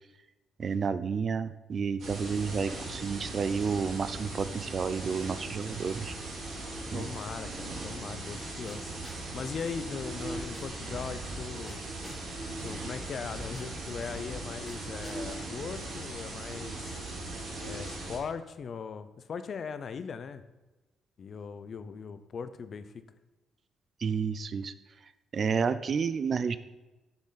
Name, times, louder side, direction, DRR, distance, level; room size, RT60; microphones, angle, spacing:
voice 1, 0.6-6.1 6.9-7.1 24.0-24.7 25.3-26.6, right 6 dB, 45° right, 14 dB, 0.4 m, -30 dB
sound 1, 2.0-18.2, right 2 dB, 70° right, 2.9 m, -39 dB
voice 2, 6.9-9.0 9.3-11.8 12.6-17.0 17.6-20.4 21.2-23.0, left 6 dB, 50° left, 12 dB, 0.6 m, -39 dB
sound 2, 8.7-9.3 9.6-12.3 12.6-15.2, left 1 dB, 10° left, 2.1 m, -48 dB
8.5 x 6.2 x 4.1 m, 1.1 s
cardioid pair, 90°, 0 cm